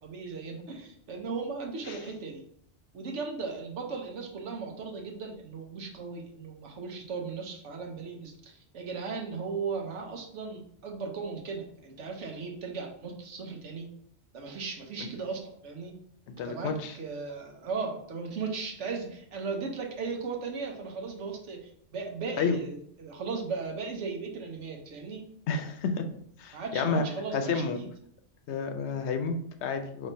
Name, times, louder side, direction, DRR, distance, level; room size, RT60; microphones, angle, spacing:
voice 1, 0.0-2.4 2.9-13.9 14.3-15.9 16.4-25.2 26.5-27.9, right 4 dB, 90° right, 1 dB, 1.2 m, -37 dB
voice 2, 16.3-16.9 22.4-22.6 25.5-26.1 26.4-27.0 27.3-27.8 28.5-30.1, left 5 dB, 75° left, 6 dB, 0.8 m, -30 dB
5.0 x 3.6 x 2.6 m, 0.67 s
omnidirectional pair, 1.2 m